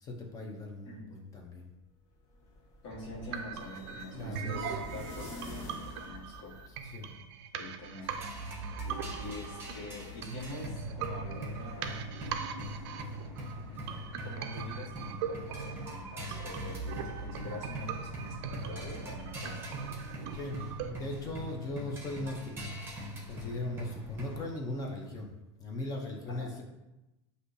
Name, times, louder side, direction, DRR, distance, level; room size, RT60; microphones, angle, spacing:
voice 1, 0.0-1.7 4.1-4.8 6.9-7.1 20.1-22.8 23.1-25.3 25.6-26.6, left 2 dB, 25° left, 0 dB, 0.6 m, -39 dB
sound 1, 2.1-7.1, left 2 dB, 50° left, 1.2 m, -47 dB
voice 2, 2.8-6.6 7.5-8.1 9.1-12.1 13.6-13.8 14.2-19.6 26.3-26.5, left 2 dB, 65° left, -3 dB, 1.4 m, -45 dB
sound 2, 2.9-20.9, right 6 dB, 60° right, 0.4 m, -40 dB
sound 3, 8.0-24.5, equal, 15° right, 0.9 m, -42 dB
6.3 x 2.7 x 2.6 m, 0.99 s
supercardioid pair, 140°, 16 cm